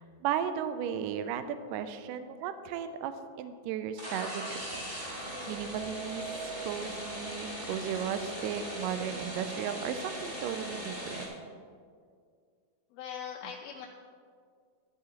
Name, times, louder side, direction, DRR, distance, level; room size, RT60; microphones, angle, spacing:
voice 1, 0.0-4.6 5.1-6.3 6.6-11.2, right 9 dB, 85° right, 10 dB, 2.0 m, -35 dB
sound 1, 3.9-11.3, right 1 dB, 20° right, 1.2 m, -39 dB
voice 2, 12.9-13.9, left 8 dB, 85° left, 1 dB, 2.5 m, -40 dB
12.5 x 10.5 x 2.9 m, 2.1 s
omnidirectional pair, 4.3 m